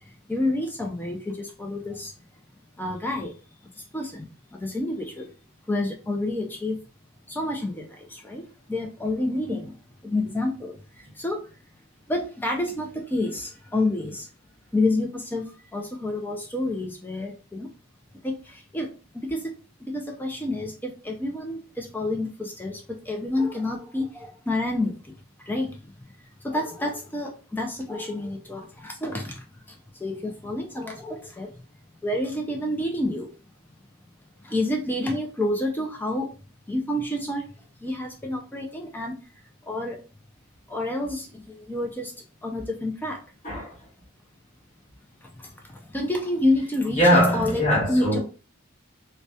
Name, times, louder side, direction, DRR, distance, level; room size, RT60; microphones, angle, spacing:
voice 1, 0.3-2.1 2.8-3.3 3.9-4.3 4.5-5.3 5.7-6.8 7.3-8.4 8.7-9.7 10.0-10.7 11.2-11.4 12.1-14.2 14.7-17.7 18.2-18.3 18.7-18.9 19.1-19.4 19.9-22.8 23.1-24.9 25.5-25.7 26.4-29.4 30.0-31.5 32.0-33.3 34.5-36.3 36.7-37.4 37.8-39.1 39.7-40.0 40.7-42.1 42.4-43.2 45.9-47.6 47.9-48.2, left 1 dB, 10° left, 0.3 m, -28 dB
voice 2, 43.4-43.8 47.0-48.2, equal, 35° left, 1.2 m, -21 dB
2.7 x 2.1 x 2.2 m
head